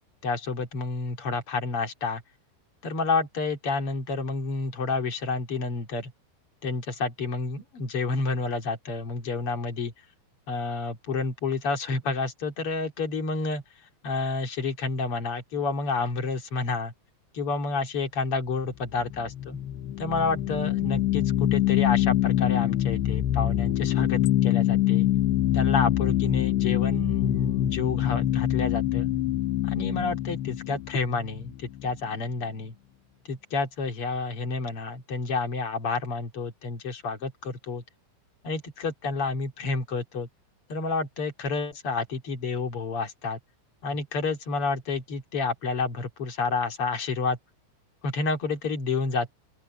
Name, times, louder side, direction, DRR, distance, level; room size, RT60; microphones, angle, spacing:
voice 1, 0.2-2.2 2.8-6.1 6.6-9.9 10.5-13.6 14.0-16.9 17.3-19.6 20.0-25.1 25.5-29.1 29.6-32.7 33.3-37.8 38.4-40.3 40.7-43.4 43.8-47.4 48.0-49.3, left 4 dB, 40° left, 2.6 m, -29 dB
sound 1, 18.9-32.1, left 13 dB, 75° left, 3.1 m, -25 dB
open air
omnidirectional pair, 5.3 m